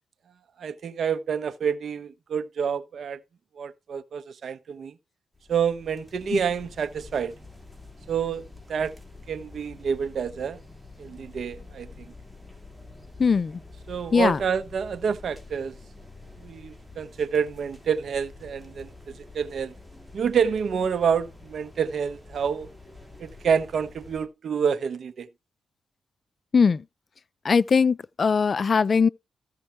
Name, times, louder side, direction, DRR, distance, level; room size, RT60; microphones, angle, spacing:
voice 1, 0.6-3.2 3.6-4.9 5.5-7.3 8.1-8.4 8.7-8.9 9.3-10.6 11.0-12.1 13.9-15.7 16.4-18.9 19.3-19.7 20.1-22.7 23.2-25.3, right 7 dB, 60° right, 1.1 m, -28 dB
sound 1, 5.3-24.2, left 3 dB, 5° left, 3.4 m, -47 dB
voice 2, 13.2-13.6 14.1-14.4 26.5-26.8 27.4-29.1, left 5 dB, 45° left, 0.4 m, -20 dB
14.5 x 5.3 x 4.4 m
cardioid pair, 95°, 0 cm